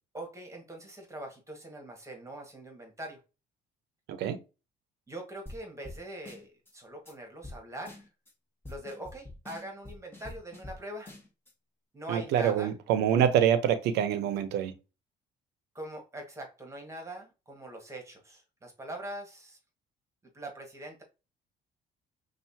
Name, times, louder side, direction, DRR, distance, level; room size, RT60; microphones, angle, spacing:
voice 1, 0.1-3.2 5.1-8.1 8.7-11.1 11.9-12.7 15.7-19.6 20.3-21.0, right 1 dB, 15° right, 1.7 m, -43 dB
sound 1, 5.5-5.6 5.8-6.0 6.3-6.7 7.1-7.2 7.4-7.6 7.9-8.3 8.6-10.8 11.1-11.5, left 1 dB, 15° left, 1.6 m, -45 dB
voice 2, 12.1-14.7, right 9 dB, 80° right, 0.8 m, -26 dB
5.6 x 2.6 x 2.8 m
cardioid pair, 110°, 17 cm